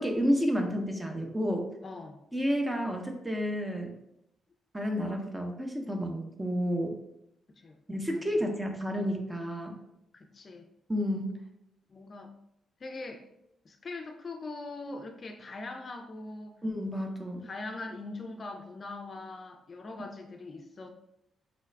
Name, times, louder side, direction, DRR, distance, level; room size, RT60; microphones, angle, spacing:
voice 1, 0.0-1.7 2.3-3.9 4.7-7.0 7.9-9.8 10.9-11.4 16.6-17.5, equal, 15° right, 3 dB, 0.7 m, -30 dB
voice 2, 1.8-2.2 7.6-7.8 8.1-8.2 10.1-10.7 11.9-12.3 12.8-13.2 13.6-16.6 17.4-20.9, left 2 dB, 45° left, 4 dB, 0.4 m, -41 dB
3.9 x 2.3 x 3.2 m, 0.82 s
supercardioid pair, 60°, 0 cm